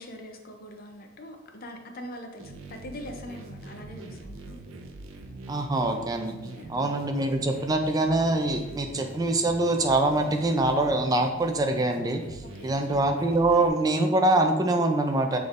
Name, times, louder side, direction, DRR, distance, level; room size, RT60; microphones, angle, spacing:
voice 1, 0.0-4.6 6.5-6.9 12.4-12.8, left 1 dB, 45° left, 4 dB, 0.6 m, -42 dB
sound 1, 2.4-13.7, right 2 dB, 85° right, 0.6 m, -43 dB
voice 2, 5.5-6.3 6.7-15.4, right 2 dB, 20° right, 5 dB, 0.4 m, -24 dB
6.1 x 3.4 x 2.5 m, 1.1 s
head